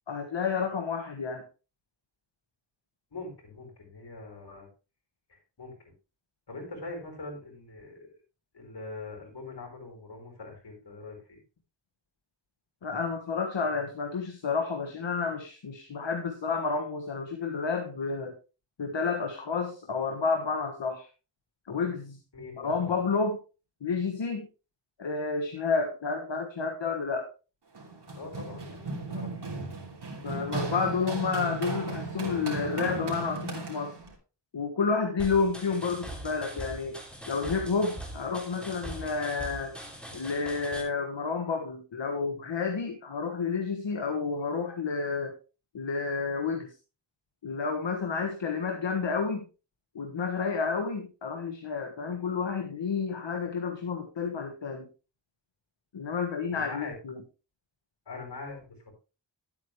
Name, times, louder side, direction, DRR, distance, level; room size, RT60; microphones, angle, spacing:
voice 1, 0.1-1.4 12.8-18.4 18.8-21.1 21.7-22.2 22.6-23.4 23.8-24.5 25.0-27.3 30.2-33.9 34.5-37.0 37.3-39.7 40.1-45.3 45.7-46.7 47.4-49.4 49.9-54.9 55.9-57.1, left 5 dB, 85° left, 3 dB, 1.4 m, -30 dB
voice 2, 3.1-4.7 5.3-5.9 6.5-8.1 8.5-11.4 22.3-23.0 28.1-29.6 56.5-56.9 58.0-58.9, left 3 dB, 70° left, 1 dB, 5.0 m, -43 dB
Run, 27.8-34.1, right 3 dB, 65° right, 3.1 m, -35 dB
sound 1, 35.2-40.8, right 1 dB, ahead, 2.9 m, -42 dB
11.0 x 8.8 x 3.2 m, 0.32 s
wide cardioid pair, 95°, 43 cm